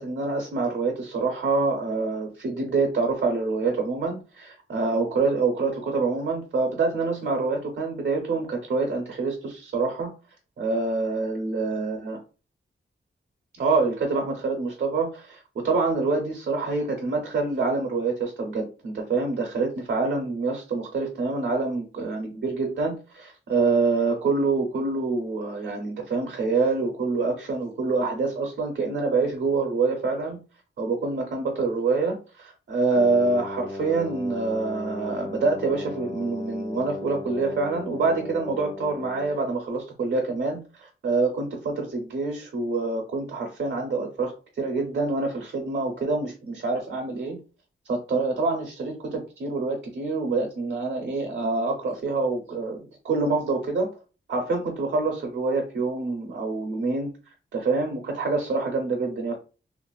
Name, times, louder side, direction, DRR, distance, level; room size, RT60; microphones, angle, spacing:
voice 1, 0.0-10.1 10.6-12.2 13.6-30.4 30.8-44.3 44.6-47.4 47.9-53.9 54.3-57.1 57.5-59.3, right 3 dB, 55° right, 1 dB, 0.7 m, -26 dB
Wind instrument woodwind instrument, 32.9-39.5, left 2 dB, 25° left, 0.4 m, -36 dB
3.1 x 2.5 x 2.3 m, 0.33 s
wide cardioid pair, 165°, 21 cm